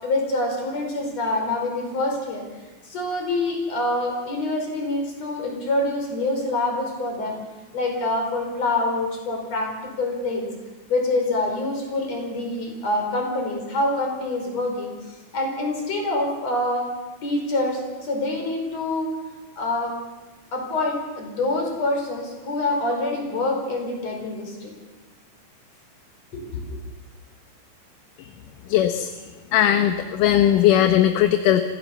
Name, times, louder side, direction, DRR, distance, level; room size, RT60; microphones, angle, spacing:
voice 1, 0.0-2.4 2.8-7.4 7.7-10.5 10.9-14.9 15.3-16.9 17.2-19.1 19.6-20.0 20.5-24.7 26.3-26.8, left 2 dB, 50° left, 1 dB, 6.0 m, -26 dB
voice 2, 28.7-29.1 29.5-31.6, left 11 dB, 75° left, 7 dB, 2.5 m, -18 dB
27.0 x 16.0 x 7.1 m, 1.2 s
omnidirectional pair, 4.0 m